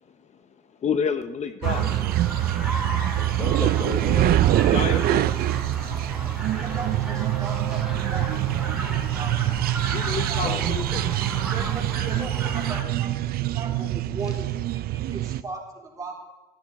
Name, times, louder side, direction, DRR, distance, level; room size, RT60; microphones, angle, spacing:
voice 1, 0.8-1.9 4.7-5.2 9.9-11.1, left 6 dB, 40° left, 10 dB, 0.7 m, -29 dB
voice 2, 1.6-2.1 3.4-4.7 5.1-5.2 10.4-10.7 11.4-11.5, left 6 dB, 20° left, 12 dB, 0.4 m, -35 dB
sound 1, 1.6-12.8, right 1 dB, ahead, 3.6 m, -34 dB
sound 2, 1.6-15.4, right 14 dB, 65° right, 0.5 m, -24 dB
voice 3, 6.6-8.7 9.2-9.4 10.0-10.8 11.5-13.1 13.4-16.1, right 3 dB, 20° right, -2 dB, 3.5 m, -38 dB
13.0 x 12.0 x 4.2 m, 1.2 s
cardioid pair, 110°, 17 cm